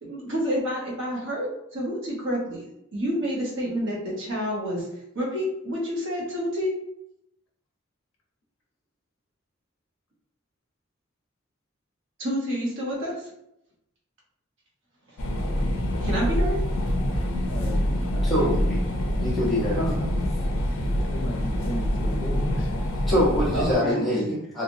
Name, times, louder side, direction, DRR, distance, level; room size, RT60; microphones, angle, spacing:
voice 1, 0.0-2.6 2.9-4.8 5.1-6.7 12.2-13.1 16.0-16.6 19.7-20.1 23.5-24.0, equal, 60° right, -3 dB, 0.9 m, -28 dB
sound 1, 15.2-23.7, left 1 dB, 85° left, 0.5 m, -26 dB
voice 2, 17.5-18.8 21.0-22.9 23.8-24.4, equal, 60° left, -1 dB, 0.9 m, -36 dB
voice 3, 18.2-18.5 19.2-19.8 23.1-24.6, left 1 dB, ahead, -9 dB, 1.1 m, -24 dB
3.0 x 2.4 x 2.6 m, 0.80 s
head